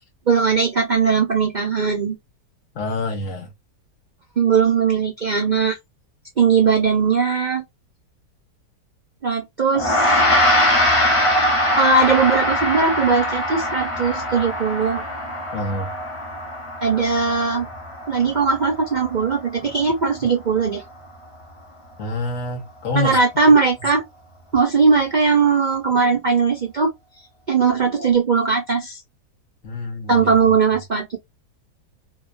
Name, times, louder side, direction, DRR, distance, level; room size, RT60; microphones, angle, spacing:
voice 1, 0.3-2.2 4.4-5.8 6.4-7.6 9.2-10.2 11.8-15.0 16.8-17.7 18.1-20.8 22.9-24.0 24.5-26.9 27.5-29.0 30.1-31.2, right 5 dB, 70° right, 0.4 m, -19 dB
voice 2, 2.7-3.5 15.5-15.9 22.0-23.2 29.6-30.3, left 3 dB, 60° left, 1.0 m, -27 dB
Gong, 9.7-19.4, left 1 dB, 25° left, 0.8 m, -22 dB
2.8 x 2.2 x 2.2 m
omnidirectional pair, 1.8 m